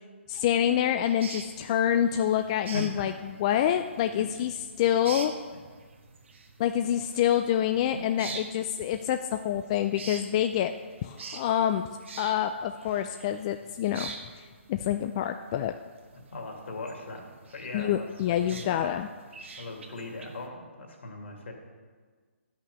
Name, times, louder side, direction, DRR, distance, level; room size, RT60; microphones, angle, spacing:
voice 1, 0.3-4.5 4.8-5.3 6.6-10.7 11.0-11.8 12.2-15.7 17.7-19.1, left 10 dB, 30° left, 7 dB, 0.3 m, -27 dB
sound 1, 1.0-20.5, right 4 dB, 65° right, 1.4 m, -46 dB
voice 2, 2.7-3.1 4.2-4.3 7.9-8.0 16.3-17.2 17.5-18.9 19.6-21.5, left 2 dB, 65° left, 1 dB, 2.5 m, -39 dB
10.5 x 5.8 x 6.9 m, 1.5 s
hypercardioid pair, 155°, 7 cm